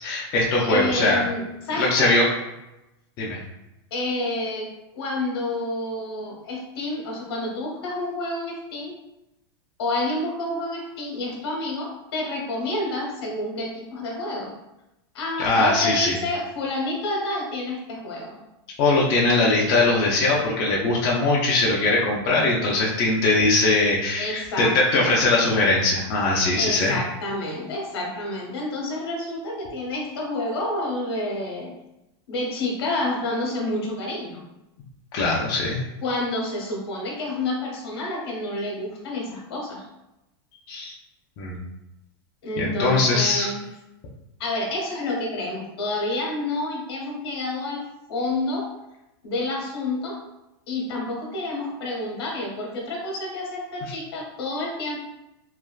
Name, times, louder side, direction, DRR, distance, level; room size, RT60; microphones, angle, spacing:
voice 1, 0.0-1.2 1.8-2.2 3.2-3.4 15.4-16.1 18.8-26.9 35.1-35.8 40.7-40.9 41.4-41.6 42.6-43.5, left 2 dB, 25° left, -4 dB, 0.3 m, -21 dB
voice 2, 0.6-2.1 3.9-4.7 4.9-8.9 9.8-14.5 15.1-18.4 24.2-25.1 26.5-31.7 32.3-34.4 36.0-39.8 42.4-43.6 44.4-47.8 48.1-48.7 49.2-50.2 50.7-55.0, left 2 dB, 65° left, -1 dB, 0.9 m, -29 dB
3.2 x 2.3 x 2.2 m, 0.93 s
supercardioid pair, 175°, 14 cm